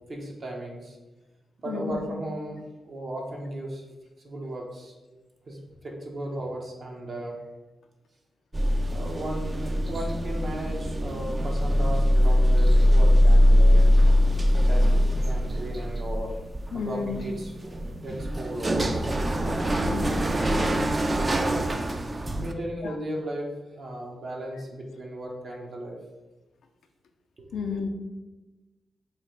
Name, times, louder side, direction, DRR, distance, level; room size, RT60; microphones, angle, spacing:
voice 1, 0.1-1.0 1.6-3.8 4.2-4.9 5.5-5.6 5.8-7.4 8.9-13.8 14.5-16.3 16.7-19.0 19.4-19.8 20.1-21.7 22.4-26.0 27.5-27.6, right 1 dB, 60° right, 0 dB, 0.8 m, -36 dB
voice 2, 1.7-2.1 16.7-17.3 19.9-20.2 22.8-23.0 27.5-27.9, left 5 dB, 75° left, 5 dB, 0.4 m, -32 dB
sound 1, 8.5-22.5, equal, 35° right, 0.4 m, -22 dB
3.1 x 2.4 x 4.3 m, 1.1 s
supercardioid pair, 45°, 0 cm